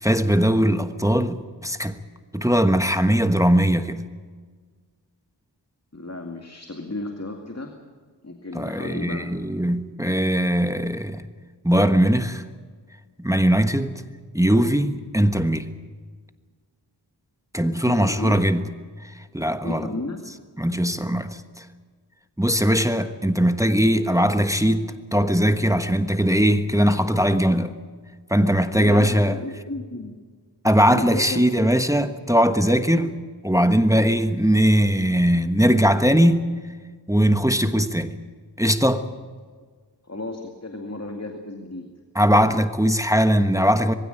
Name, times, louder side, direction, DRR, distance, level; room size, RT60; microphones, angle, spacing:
voice 1, 0.0-2.0 2.3-4.0 8.5-11.2 11.6-12.4 13.2-14.0 14.3-15.7 17.5-18.7 19.0-19.9 20.6-21.6 22.4-27.8 28.3-29.4 30.6-33.2 33.4-36.5 37.1-38.2 38.6-39.1 42.1-43.9, equal, 5° right, 1.3 m, -20 dB
voice 2, 5.9-7.7 8.2-9.3 17.8-18.4 19.6-20.2 28.8-30.1 30.9-31.7 40.1-41.9, left 2 dB, 35° left, 2.3 m, -33 dB
22.0 x 16.0 x 9.1 m
wide cardioid pair, 40°, 42 cm